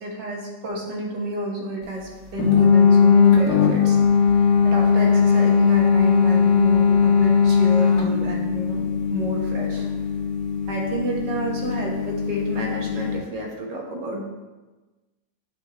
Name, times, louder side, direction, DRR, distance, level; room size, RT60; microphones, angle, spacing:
voice 1, 0.0-4.0 4.3-8.8 9.1-9.9 10.7-14.2, right 1 dB, 70° right, -1 dB, 1.9 m, -30 dB
sound 1, 2.4-13.2, left 6 dB, 65° left, 1.4 m, -19 dB
9.5 x 5.5 x 3.1 m, 1.2 s
omnidirectional pair, 2.0 m